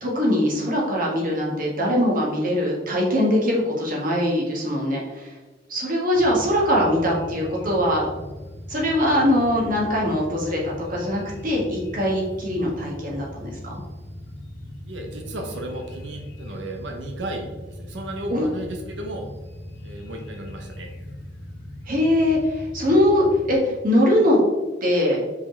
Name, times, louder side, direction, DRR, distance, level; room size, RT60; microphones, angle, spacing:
voice 1, 0.0-5.3 5.7-8.1 8.7-13.8 18.3-18.5 21.9-24.4 24.8-25.2, left 1 dB, 50° right, -3 dB, 1.9 m, -22 dB
sound 1, 6.1-23.5, left 1 dB, 70° left, 1.3 m, -39 dB
voice 2, 14.9-19.3 19.8-20.9, right 1 dB, 80° right, 2 dB, 0.9 m, -34 dB
5.3 x 5.3 x 4.0 m, 1.2 s
head